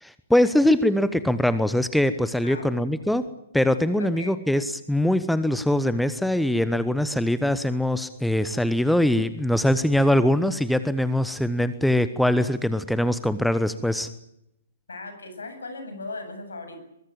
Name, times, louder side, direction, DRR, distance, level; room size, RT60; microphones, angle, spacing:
voice 1, 0.0-3.2 3.5-14.1, left 1 dB, ahead, 13 dB, 1.0 m, -22 dB
voice 2, 4.0-4.3 14.9-16.8, left 3 dB, 70° left, 8 dB, 7.8 m, -37 dB
23.0 x 22.5 x 8.8 m, 0.83 s
figure-of-eight pair, 120°, 0 cm